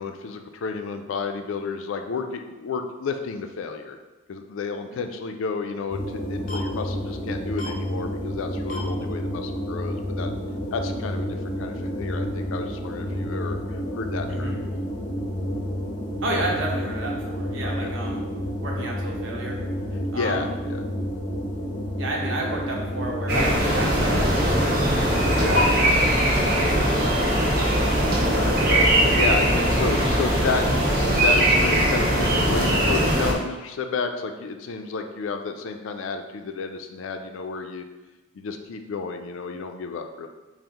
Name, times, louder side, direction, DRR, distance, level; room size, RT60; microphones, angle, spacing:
voice 1, 0.0-4.0 4.3-10.3 10.7-11.3 11.6-14.5 17.8-17.9 20.1-20.8 25.4-25.6 28.3-30.6 31.0-37.9 38.3-40.3, left 4 dB, 90° left, 6 dB, 0.4 m, -31 dB
sound 1, 5.9-25.6, equal, 40° left, 0.6 m, -30 dB
voice 2, 14.3-14.6 16.2-18.3 18.6-19.6 20.1-20.5 22.0-24.7 25.3-27.4, right 1 dB, 80° right, -1 dB, 0.8 m, -31 dB
sound 2, 23.3-33.3, right 1 dB, 50° right, 0.6 m, -20 dB
5.4 x 2.1 x 2.9 m, 1.2 s
head